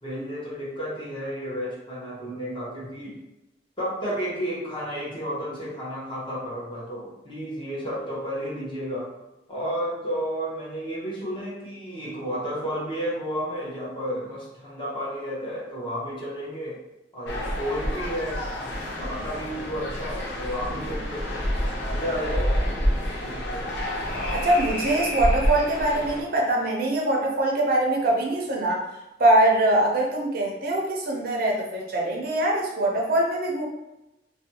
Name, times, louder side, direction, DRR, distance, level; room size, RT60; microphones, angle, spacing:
voice 1, 0.0-3.2 3.8-9.1 9.5-16.8 17.1-18.5 19.0-21.5 21.9-22.7 23.2-23.7, equal, 30° left, -6 dB, 0.9 m, -32 dB
sound 1, 17.3-26.2, equal, 75° left, 0.6 m, -28 dB
voice 2, 24.3-28.9 29.2-33.6, right 1 dB, 55° right, -1 dB, 0.5 m, -23 dB
2.5 x 2.2 x 2.7 m, 0.93 s
head